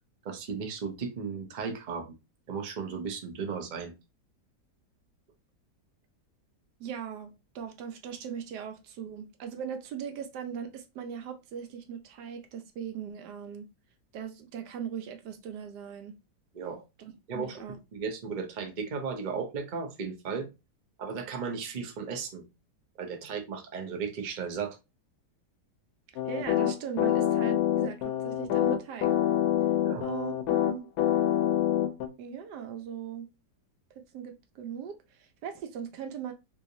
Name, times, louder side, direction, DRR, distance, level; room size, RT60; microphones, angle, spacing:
voice 1, 0.2-2.1 2.5-3.9 16.5-16.8 17.3-17.6 17.9-20.5 21.0-22.4 23.0-24.8 29.8-30.0, right 5 dB, 55° right, 0.5 m, -35 dB
voice 2, 6.8-13.7 14.1-16.1 17.0-17.8 23.1-23.4 26.3-29.1 30.0-30.9 32.2-33.3 34.1-36.3, right 8 dB, 75° right, 1.2 m, -39 dB
sound 1, 26.2-32.1, left 11 dB, 70° left, 1.1 m, -26 dB
3.4 x 3.1 x 2.6 m
omnidirectional pair, 1.8 m